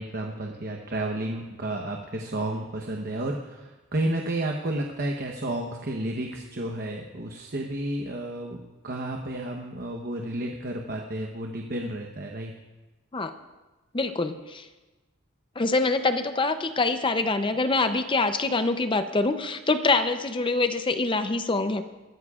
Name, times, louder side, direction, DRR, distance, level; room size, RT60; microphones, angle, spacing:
voice 1, 0.0-12.5, right 1 dB, 45° right, 2 dB, 1.0 m, -31 dB
voice 2, 13.9-14.7 15.6-21.8, left 3 dB, 25° left, 9 dB, 0.6 m, -25 dB
22.5 x 15.0 x 2.4 m, 1.1 s
head